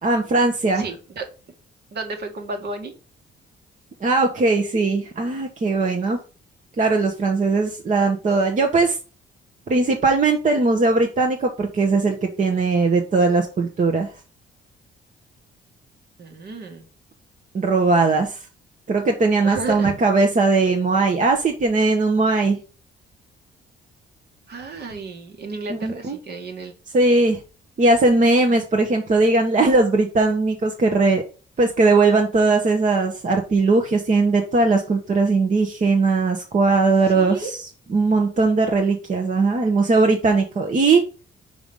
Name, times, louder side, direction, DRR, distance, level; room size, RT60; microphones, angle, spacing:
voice 1, 0.0-0.9 4.0-6.2 6.8-9.0 9.7-14.1 17.5-18.4 18.9-22.6 25.7-26.2 26.9-27.4 27.8-31.2 31.6-41.0, right 3 dB, 40° right, 3 dB, 1.2 m, -19 dB
voice 2, 0.8-1.3 1.9-2.9 16.2-16.9 19.4-19.9 24.5-26.8 37.1-37.5, right 3 dB, 55° right, 4 dB, 1.9 m, -32 dB
5.3 x 4.8 x 5.4 m, 0.35 s
cardioid pair, 90°, 20 cm